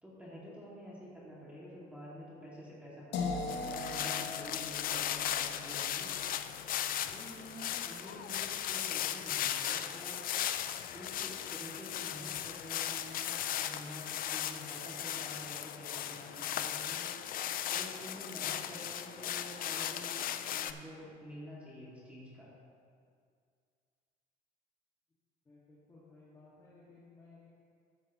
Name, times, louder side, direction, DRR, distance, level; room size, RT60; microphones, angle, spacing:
voice 1, 0.0-6.1 7.1-10.2 10.9-17.1 17.7-22.5, equal, 10° right, -7 dB, 2.4 m, -49 dB
sound 1, 3.1-9.0, left 3 dB, 80° left, 1.3 m, -42 dB
sound 2, 3.5-20.7, left 10 dB, 55° left, 0.5 m, -37 dB
voice 2, 25.5-27.5, left 3 dB, 20° left, -9 dB, 2.0 m, -58 dB
12.5 x 8.1 x 3.1 m, 2.2 s
cardioid pair, 110°, 17 cm